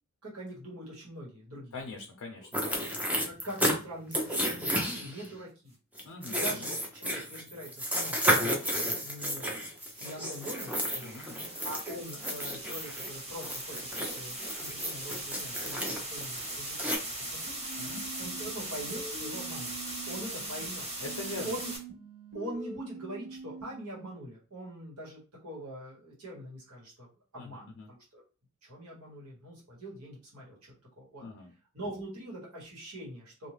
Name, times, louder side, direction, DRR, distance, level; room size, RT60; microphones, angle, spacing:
voice 1, 0.2-1.7 2.4-2.5 3.2-5.7 6.3-9.4 10.0-17.6 18.2-19.8 20.1-20.9 21.4-21.7 22.3-27.1 27.3-28.2 28.6-31.2 31.7-33.5, right 1 dB, 75° right, -4 dB, 1.4 m, -43 dB
voice 2, 1.7-2.8 6.0-6.7 11.0-11.5 17.8-18.0 21.0-21.6 27.3-27.9 31.2-31.5, left 3 dB, 70° left, 2 dB, 0.5 m, -42 dB
sound 1, 2.5-3.8 4.1-5.3 6.0-13.1 13.4-17.0, equal, 5° right, 0.5 m, -32 dB
sound 2, 6.6-6.7 8.9-21.8, right 1 dB, 30° right, 0.9 m, -40 dB
sound 3, 17.6-20.6 21.0-24.1, right 4 dB, 50° right, 1.2 m, -45 dB
2.6 x 2.3 x 3.1 m, 0.33 s
head